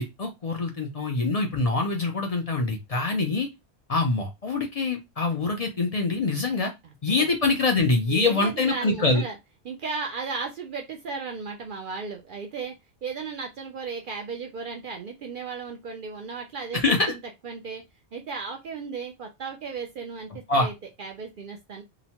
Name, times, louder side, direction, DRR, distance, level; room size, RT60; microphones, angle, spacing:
voice 1, 0.0-3.5 3.9-6.7 7.0-9.2 16.7-17.1 20.5-20.7, left 3 dB, 50° left, 3 dB, 0.4 m, -24 dB
voice 2, 8.1-9.4 9.6-17.8 18.1-20.7 21.0-21.8, right 5 dB, 60° right, 2 dB, 0.6 m, -35 dB
2.9 x 2.1 x 2.8 m, 0.21 s
omnidirectional pair, 1.1 m